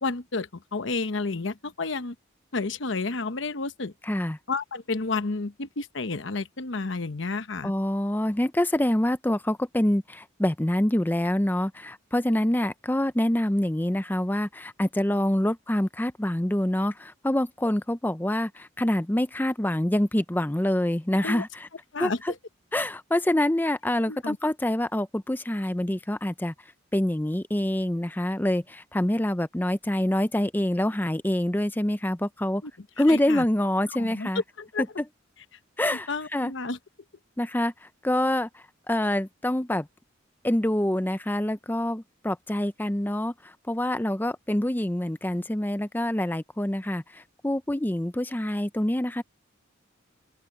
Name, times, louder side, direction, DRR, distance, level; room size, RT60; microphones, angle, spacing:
voice 1, 0.0-2.1 2.5-3.9 4.5-7.7 21.2-21.4 21.9-22.2 24.1-24.4 32.6-32.7 33.1-33.4 34.0-34.3 34.6-34.8 35.8-36.8, left 3 dB, 65° left, 1.0 m, -31 dB
voice 2, 4.0-4.4 7.6-21.7 22.0-22.3 22.7-26.5 26.9-32.6 33.0-34.4 35.8-36.5 37.4-39.9 40.4-49.2, left 1 dB, 10° left, 0.5 m, -26 dB
open air
head